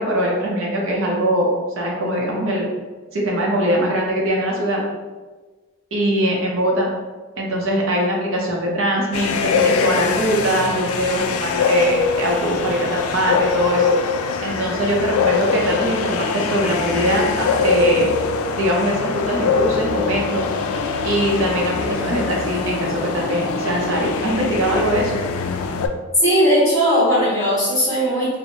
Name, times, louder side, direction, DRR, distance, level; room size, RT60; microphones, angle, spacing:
voice 1, 0.0-2.7 3.1-4.8 5.9-6.9 7.4-13.8 14.4-18.1 18.6-20.5 21.0-25.1, equal, 65° right, -2 dB, 0.6 m, -21 dB
sound 1, 9.1-25.9, left 5 dB, 85° left, 0.3 m, -23 dB
voice 2, 26.2-28.3, equal, 15° left, -9 dB, 1.3 m, -17 dB
4.3 x 2.0 x 2.8 m, 1.3 s
head